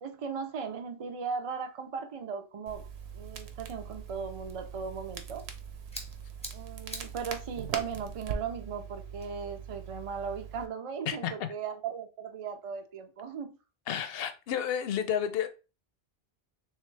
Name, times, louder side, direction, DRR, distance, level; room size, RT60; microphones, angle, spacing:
voice 1, 0.0-2.9 3.1-5.5 6.5-13.6, right 6 dB, 50° right, 0.4 m, -37 dB
Crackle, 2.7-10.7, right 7 dB, 90° right, 0.9 m, -41 dB
sound 1, 5.4-10.1, left 1 dB, 5° left, 0.6 m, -49 dB
voice 2, 11.1-11.5 13.9-15.5, left 9 dB, 70° left, 0.8 m, -31 dB
3.3 x 3.2 x 3.1 m
omnidirectional pair, 1.0 m